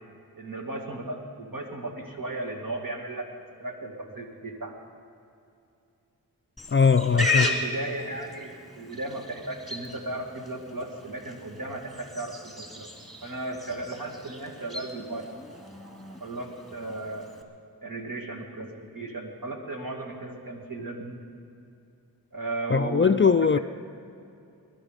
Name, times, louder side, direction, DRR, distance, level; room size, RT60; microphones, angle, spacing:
voice 1, 0.4-3.3 3.6-4.7 7.1-12.9 13.2-15.3 16.2-17.4 17.8-18.7 18.9-21.2 22.3-23.6, right 2 dB, 60° right, 1 dB, 2.3 m, -35 dB
Livestock farm animals working animals, 6.6-17.4, left 2 dB, ahead, 2.1 m, -35 dB
voice 2, 6.7-7.5 22.7-23.6, left 5 dB, 30° left, 11 dB, 0.4 m, -20 dB
21.5 x 11.5 x 5.2 m, 2.6 s
wide cardioid pair, 55°, 38 cm